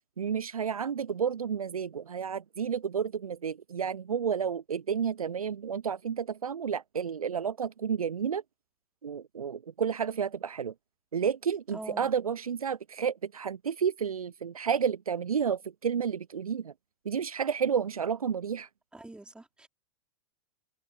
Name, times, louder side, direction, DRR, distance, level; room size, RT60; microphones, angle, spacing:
voice 1, 0.2-8.4 9.0-10.7 11.1-16.7 17.1-18.7, right 7 dB, 80° right, 0.4 m, -31 dB
voice 2, 11.7-12.1 18.9-19.7, right 2 dB, 5° right, 3.7 m, -44 dB
figure-of-eight pair, 95°, 18 cm